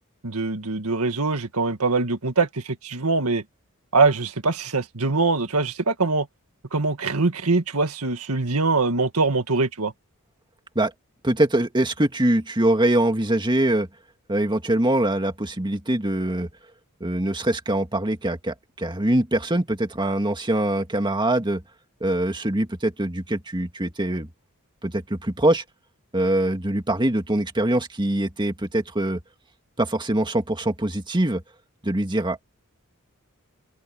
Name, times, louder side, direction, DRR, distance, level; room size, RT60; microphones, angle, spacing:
voice 1, 0.2-3.4 3.9-6.3 6.7-9.9, right 3 dB, 85° right, 1.8 m, -23 dB
voice 2, 11.2-13.9 14.3-16.5 17.0-21.6 22.0-24.3 24.8-25.6 26.1-29.2 29.8-31.4 31.8-32.4, right 1 dB, 20° right, 1.9 m, -23 dB
open air
head